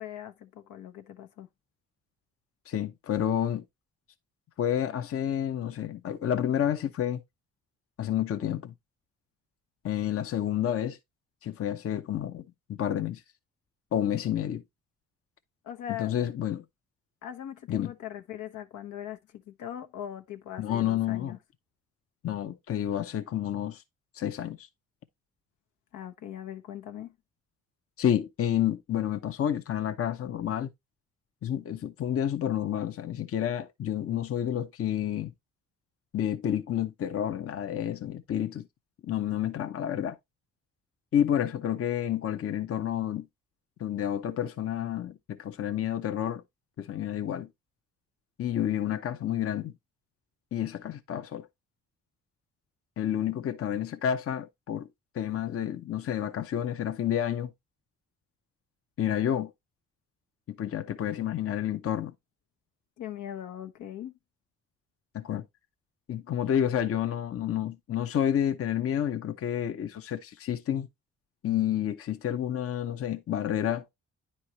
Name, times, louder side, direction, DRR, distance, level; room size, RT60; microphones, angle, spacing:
voice 1, 0.0-1.5 15.6-16.1 17.2-21.4 25.9-27.1 63.0-64.1, left 10 dB, 80° left, 1.0 m, -40 dB
voice 2, 2.7-3.6 4.6-7.2 8.0-8.7 9.8-11.0 11.4-13.2 13.9-14.6 16.0-16.6 17.7-17.9 20.6-21.4 22.2-23.8 24.1-24.7 28.0-30.7 31.4-35.3 36.1-38.7 39.0-40.2 41.1-43.3 43.8-46.4 46.8-47.5 48.4-49.7 50.5-51.5 53.0-54.9 55.1-57.5 59.0-59.5 60.5-62.1 65.1-65.4 66.1-70.9 71.4-73.8, left 10 dB, 50° left, 0.8 m, -29 dB
9.8 x 4.4 x 3.1 m
cardioid pair, 90°, 30 cm